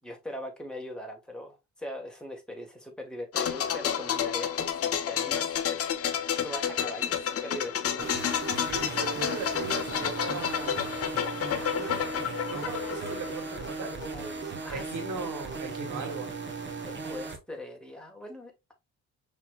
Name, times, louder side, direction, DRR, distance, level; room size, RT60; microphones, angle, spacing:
voice 1, 0.0-8.0 11.6-12.1 13.8-15.3 16.9-18.7, left 1 dB, 5° left, 1.7 m, -41 dB
sound 1, 3.3-14.0 14.2-14.4, left 9 dB, 50° left, 0.7 m, -30 dB
sound 2, 8.0-17.4, right 4 dB, 40° right, 1.2 m, -37 dB
voice 2, 8.6-11.0 11.5-14.0 14.7-16.3, right 4 dB, 70° right, 1.9 m, -38 dB
5.7 x 3.5 x 2.4 m
cardioid pair, 90°, 30 cm